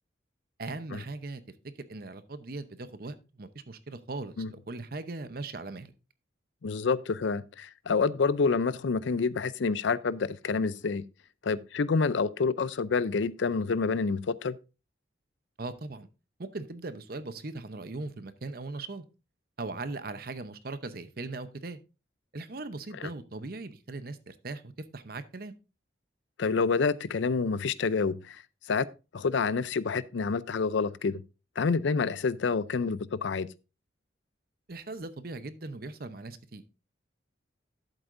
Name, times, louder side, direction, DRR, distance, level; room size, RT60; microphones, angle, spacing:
voice 1, 0.6-5.9 15.6-16.1 16.4-19.0 19.6-21.8 22.3-25.5 34.7-36.6, right 3 dB, 50° right, 0.8 m, -39 dB
voice 2, 6.6-11.0 11.4-14.6 23.0-23.1 26.4-28.4 28.7-28.9 29.1-31.2 31.6-33.5, left 4 dB, 70° left, 0.5 m, -28 dB
11.5 x 7.9 x 2.5 m
head